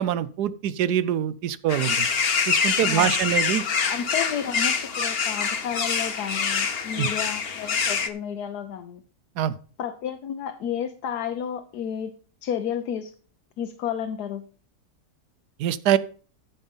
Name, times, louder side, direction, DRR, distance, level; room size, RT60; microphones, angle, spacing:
voice 1, 0.0-2.1 2.5-3.6 7.0-7.1 9.4-9.6 15.6-16.0, right 10 dB, 80° right, 16 dB, 1.2 m, -24 dB
sound 1, 1.7-8.1, left 6 dB, 45° left, 1.0 m, -25 dB
voice 2, 2.8-3.2 3.9-9.0 9.8-12.1 12.4-13.1 13.6-14.4, left 9 dB, 80° left, 7 dB, 1.3 m, -31 dB
14.0 x 5.4 x 5.3 m, 0.41 s
omnidirectional pair, 1.7 m